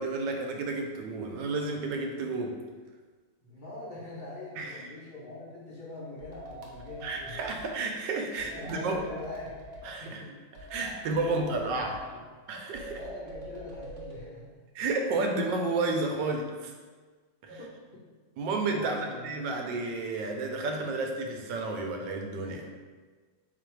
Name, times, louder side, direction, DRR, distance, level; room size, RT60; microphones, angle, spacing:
voice 1, 0.0-2.6 4.6-4.8 7.0-9.0 9.8-10.2 10.7-11.9 12.5-13.0 14.7-16.7 18.4-22.7, right 3 dB, 90° right, 2 dB, 1.3 m, -31 dB
voice 2, 3.4-7.4 8.3-10.3 11.1-12.2 12.9-14.5 17.5-17.7 18.8-19.3, left 2 dB, 35° left, -9 dB, 0.8 m, -43 dB
sound 1, 6.2-7.7 8.4-9.9 10.5-12.1 12.7-14.2, right 1 dB, 65° right, 1.1 m, -44 dB
4.2 x 2.5 x 4.5 m, 1.4 s
omnidirectional pair, 1.9 m